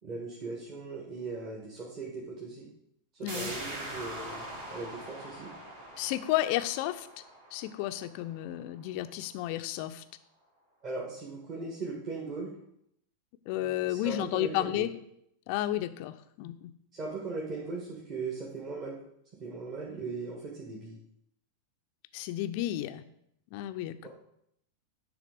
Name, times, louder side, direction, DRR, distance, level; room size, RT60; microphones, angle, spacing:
voice 1, 0.0-2.7 3.2-5.5 10.8-12.5 13.9-14.9 16.9-19.0 19.3-21.0 24.0-24.1, right 3 dB, 35° right, -3 dB, 1.6 m, -39 dB
voice 2, 3.2-3.5 6.0-7.1 7.5-10.0 13.5-14.9 15.5-16.7 22.1-23.0 23.5-24.1, left 14 dB, 45° left, 11 dB, 0.5 m, -32 dB
sound 1, 3.3-8.7 9.1-9.2, right 1 dB, 55° right, 2.4 m, -43 dB
9.7 x 3.6 x 5.0 m, 0.75 s
figure-of-eight pair, 90°, 0 cm